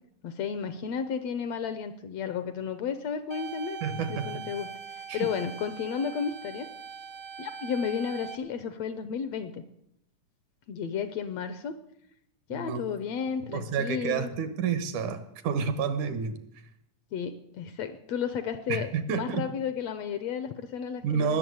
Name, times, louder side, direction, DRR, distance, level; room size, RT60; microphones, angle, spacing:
voice 1, 0.2-3.8 4.1-6.7 7.4-9.6 10.7-11.8 12.5-14.3 17.1-21.4, left 7 dB, 70° left, 12 dB, 1.7 m, -33 dB
sound 1, 3.3-8.3, right 6 dB, 90° right, 0.6 m, -41 dB
voice 2, 3.8-4.4 5.1-5.3 12.5-12.8 13.5-16.4 18.7-19.5 21.0-21.4, right 6 dB, 75° right, 12 dB, 2.6 m, -30 dB
19.5 x 7.0 x 9.5 m, 0.78 s
omnidirectional pair, 3.7 m